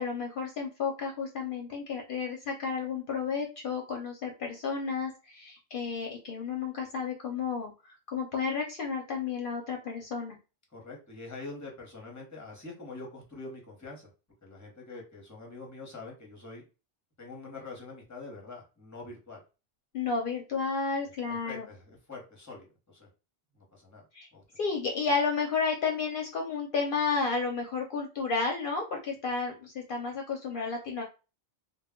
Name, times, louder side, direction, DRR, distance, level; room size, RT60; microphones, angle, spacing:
voice 1, 0.0-10.4 19.9-21.7 24.1-24.3 24.6-31.0, left 5 dB, 65° left, 1 dB, 0.7 m, -32 dB
voice 2, 10.7-14.1 14.4-16.7 17.2-19.4 21.0-23.1 23.5-24.1 24.3-24.4, left 3 dB, 20° left, -1 dB, 0.9 m, -45 dB
2.2 x 2.2 x 3.5 m, 0.31 s
omnidirectional pair, 1.0 m